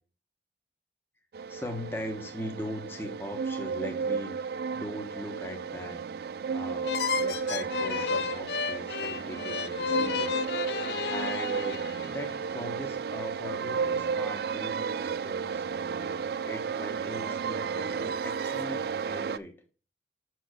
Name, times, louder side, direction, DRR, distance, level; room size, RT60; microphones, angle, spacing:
sound 1, 1.3-19.4, right 6 dB, 55° right, 0.3 m, -33 dB
voice 1, 1.5-6.0 6.5-10.4 11.0-15.6 16.4-19.6, left 1 dB, 15° left, 3 dB, 1.3 m, -40 dB
sound 2, 6.8-12.4, left 6 dB, 65° left, 0.5 m, -32 dB
6.4 x 4.7 x 6.4 m, 0.37 s
head